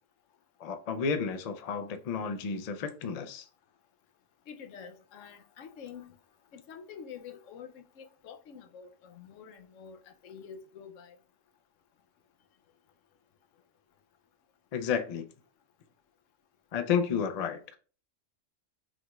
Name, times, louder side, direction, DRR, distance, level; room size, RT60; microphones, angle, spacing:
voice 1, 0.6-3.5 14.7-15.3 16.7-17.8, left 6 dB, 60° left, 0.4 m, -31 dB
voice 2, 4.5-6.1 6.5-11.2, left 7 dB, 75° left, 1.0 m, -47 dB
5.9 x 2.3 x 3.0 m
omnidirectional pair, 1.3 m